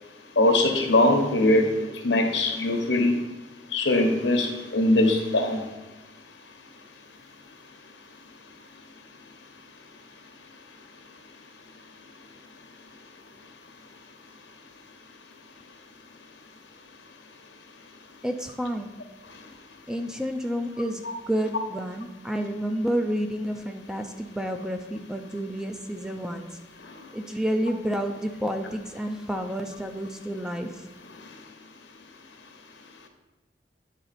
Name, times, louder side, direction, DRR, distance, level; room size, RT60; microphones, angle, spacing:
voice 1, 0.4-1.7 2.0-3.2 3.7-5.6, left 1 dB, 85° left, 4 dB, 1.1 m, -21 dB
voice 2, 18.2-18.9 19.9-26.5 27.1-30.8, equal, 5° right, 5 dB, 0.4 m, -30 dB
9.3 x 3.9 x 4.1 m, 1.1 s
head